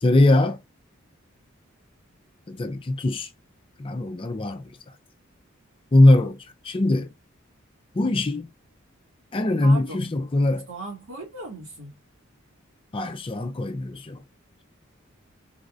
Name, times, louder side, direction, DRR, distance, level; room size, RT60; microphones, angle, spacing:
voice 1, 0.0-0.6 2.5-3.3 3.8-4.8 5.9-7.1 7.9-8.5 9.3-10.7 12.9-14.2, left 2 dB, 25° left, 0.4 m, -21 dB
voice 2, 9.6-10.1 10.7-12.0, right 2 dB, 80° right, 1.9 m, -37 dB
4.0 x 2.5 x 2.4 m
head